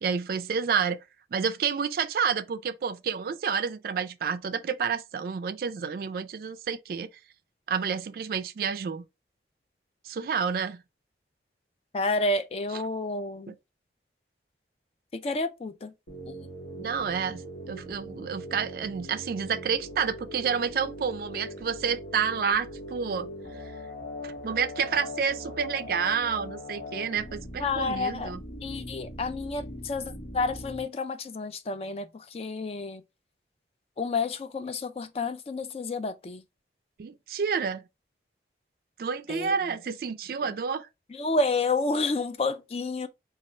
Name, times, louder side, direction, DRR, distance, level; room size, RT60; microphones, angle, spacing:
voice 1, 0.0-1.0 1.3-7.1 7.7-9.0 10.1-10.8 12.7-12.8 13.5-13.6 16.8-17.4 17.7-23.3 24.2-28.4 37.0-37.8 39.0-40.9, right 6 dB, 55° right, 0.3 m, -29 dB
voice 2, 11.9-13.5 15.1-15.9 16.3-16.4 27.6-28.3 28.6-33.0 34.0-36.4 39.3-39.5 41.1-43.1, left 3 dB, 35° left, 0.3 m, -30 dB
sound 1, 16.1-30.8, left 1 dB, 80° left, 1.2 m, -40 dB
4.1 x 2.4 x 3.1 m
head